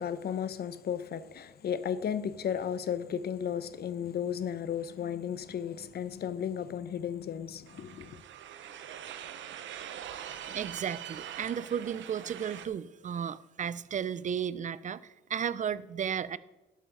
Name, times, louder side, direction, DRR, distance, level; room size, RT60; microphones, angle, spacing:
voice 1, 0.0-8.2, left 8 dB, 55° left, 0.7 m, -34 dB
sound 1, 7.7-12.7, right 10 dB, 75° right, 0.8 m, -43 dB
voice 2, 10.5-16.4, right 8 dB, 40° right, 0.5 m, -34 dB
11.5 x 8.3 x 3.8 m
cardioid pair, 90°, 20 cm